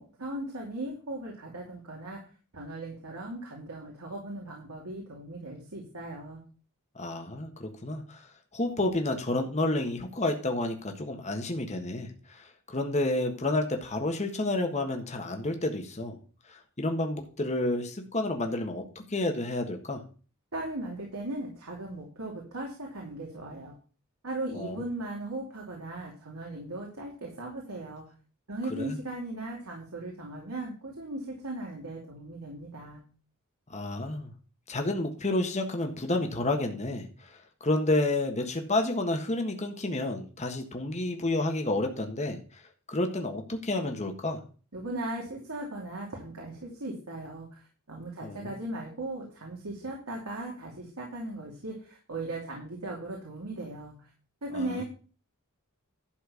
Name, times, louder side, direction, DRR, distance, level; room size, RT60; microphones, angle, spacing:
voice 1, 0.0-2.2 2.5-6.4 20.5-23.7 24.2-28.0 28.5-33.0 44.7-47.6 47.9-53.9 54.4-54.8, right 2 dB, 85° right, -2 dB, 2.8 m, -38 dB
voice 2, 6.9-8.2 8.5-16.2 16.8-20.0 24.5-24.8 28.8-29.0 33.7-34.3 34.7-37.1 37.6-42.4 42.9-44.4 48.2-48.6 54.5-54.8, left 2 dB, 30° left, 4 dB, 1.5 m, -30 dB
12.0 x 4.5 x 7.0 m, 0.38 s
head